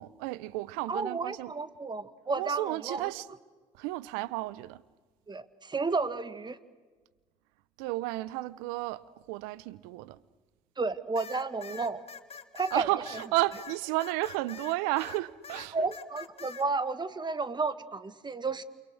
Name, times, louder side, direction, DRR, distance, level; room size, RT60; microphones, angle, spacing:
voice 1, 0.0-1.5 2.4-3.3 3.8-4.8 7.8-9.0 9.3-10.2 12.7-15.8, right 18 dB, 80° right, 0.9 m, -32 dB
voice 2, 0.9-3.1 5.3-6.6 10.8-12.0 12.5-12.9 15.7-18.6, right 4 dB, 30° right, 2.0 m, -32 dB
sound 1, 11.2-15.2 15.4-16.7, left 6 dB, 40° left, 2.4 m, -45 dB
29.0 x 28.0 x 6.6 m
hypercardioid pair, 55°, 15 cm